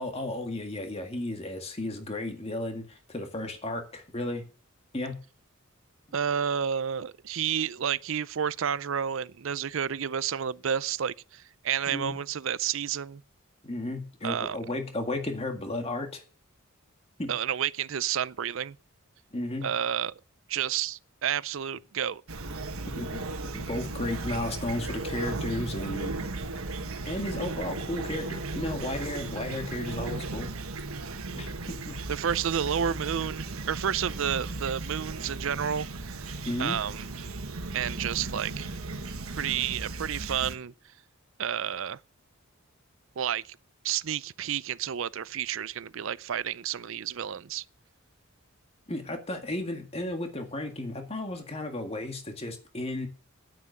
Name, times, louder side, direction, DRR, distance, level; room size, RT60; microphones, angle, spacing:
voice 1, 0.0-4.4 4.9-5.2 11.9-12.1 13.6-16.2 17.2-17.3 19.3-19.7 23.0-26.1 27.0-30.5 31.3-32.0 36.5-36.8 48.9-53.1, left 1 dB, 30° left, 1.9 m, -34 dB
voice 2, 6.1-13.2 14.2-14.6 17.3-18.8 19.6-20.2 20.5-22.2 32.1-35.9 36.6-37.1 37.7-38.7 39.4-40.7 41.4-42.0 43.2-43.6 43.8-47.6, right 8 dB, 65° right, 0.5 m, -30 dB
Fowl / Chirp tweet, 22.3-40.6, right 3 dB, 85° right, 1.4 m, -36 dB
9.8 x 9.6 x 6.6 m
head